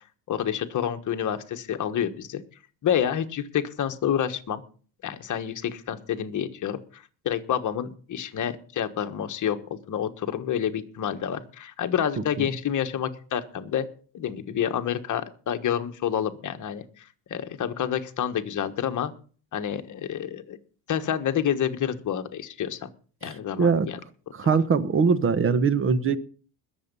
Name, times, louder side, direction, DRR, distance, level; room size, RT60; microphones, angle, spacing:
voice 1, 0.3-2.4 2.8-4.6 5.0-13.9 14.1-17.0 17.3-19.1 19.5-20.6 20.9-22.9 23.2-24.0, left 9 dB, 40° left, 8 dB, 1.4 m, -28 dB
voice 2, 24.3-26.2, right 5 dB, 30° right, 16 dB, 1.0 m, -21 dB
20.5 x 7.4 x 5.4 m, 0.42 s
cardioid pair, 130°, 44 cm